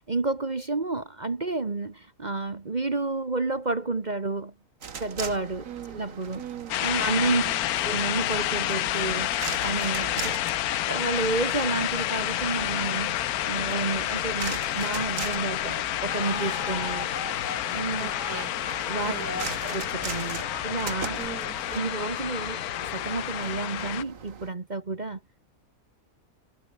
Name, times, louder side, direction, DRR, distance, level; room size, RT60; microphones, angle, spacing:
voice 1, 0.0-4.5 5.0-6.4 6.8-7.4 7.8-10.4 10.9-13.2 13.4-17.1 17.7-18.1 18.8-19.1 19.6-21.2 21.7-22.6 22.9-25.2, right 3 dB, 30° right, 1.4 m, -30 dB
sound 1, 4.8-24.5, right 6 dB, 65° right, 1.9 m, -41 dB
voice 2, 5.6-6.0 6.3-6.7 7.2-7.5 18.0-18.5 19.0-19.5 21.2-21.6, right 11 dB, 90° right, 1.4 m, -39 dB
sound 2, 6.7-24.0, left 14 dB, 90° left, 1.2 m, -29 dB
sound 3, 16.0-23.9, left 4 dB, 35° left, 1.6 m, -40 dB
omnidirectional pair, 1.5 m